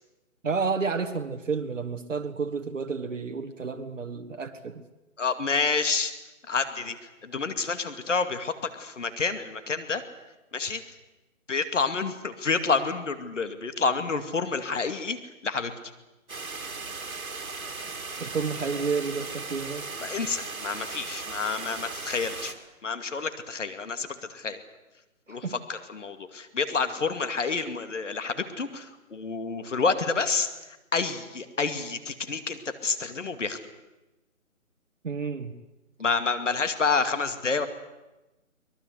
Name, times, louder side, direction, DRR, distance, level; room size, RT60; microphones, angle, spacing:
voice 1, 0.4-4.8 18.2-19.8 25.3-25.5 35.0-35.5, right 5 dB, 65° right, 4 dB, 1.7 m, -30 dB
voice 2, 5.2-6.1 6.5-10.0 10.5-10.8 11.5-15.2 15.4-15.7 20.0-22.5 22.8-24.1 24.3-24.6 25.3-30.5 30.9-33.6 36.0-37.7, left 4 dB, 60° left, 9 dB, 2.4 m, -28 dB
sound 1, 16.3-22.5, right 3 dB, 80° right, 2.8 m, -37 dB
24.0 x 20.5 x 8.1 m, 1.0 s
figure-of-eight pair, 160°, 41 cm